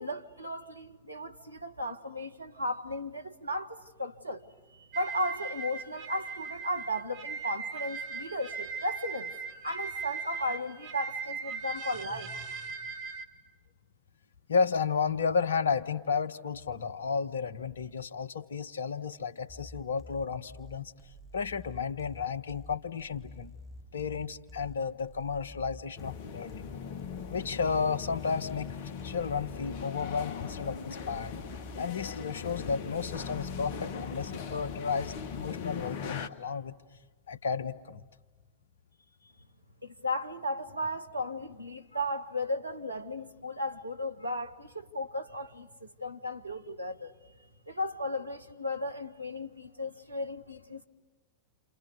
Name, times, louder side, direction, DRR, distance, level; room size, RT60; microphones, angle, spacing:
voice 1, 0.0-9.3 9.6-12.3 39.8-47.1 47.7-50.9, left 1 dB, 85° right, 1.5 m, -35 dB
sound 1, 4.9-13.2, right 5 dB, 45° right, 2.4 m, -39 dB
voice 2, 14.5-20.9 21.3-23.5 23.9-26.7 27.3-28.7 29.0-31.4 31.8-36.7 37.3-38.0, left 5 dB, 70° left, 1.2 m, -32 dB
sound 2, 19.5-35.5, left 1 dB, 5° right, 1.7 m, -49 dB
sound 3, 26.0-36.3, left 6 dB, 50° left, 1.6 m, -40 dB
29.5 x 28.5 x 6.9 m
figure-of-eight pair, 90°, 0 cm